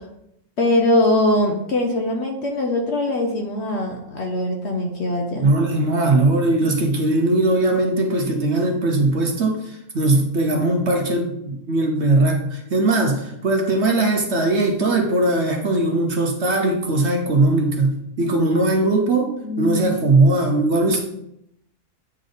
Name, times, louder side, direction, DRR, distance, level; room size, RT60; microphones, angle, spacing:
voice 1, 0.6-5.5 19.4-20.0, left 1 dB, 55° left, 2 dB, 0.9 m, -22 dB
voice 2, 5.4-21.0, right 2 dB, 55° right, 2 dB, 0.9 m, -19 dB
9.0 x 3.4 x 3.9 m, 0.77 s
omnidirectional pair, 1.6 m